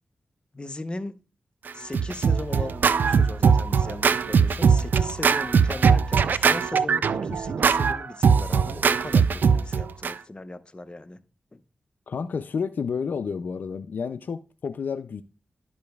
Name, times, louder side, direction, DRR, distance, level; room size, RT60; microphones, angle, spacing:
voice 1, 0.5-1.2 1.7-11.2 11.5-11.6, left 2 dB, 30° left, 0.8 m, -38 dB
Scratching (performance technique), 1.7-10.1, right 6 dB, 75° right, 0.3 m, -21 dB
voice 2, 12.1-15.2, left 6 dB, 75° left, 0.4 m, -30 dB
11.5 x 5.0 x 2.3 m
cardioid pair, 45°, 3 cm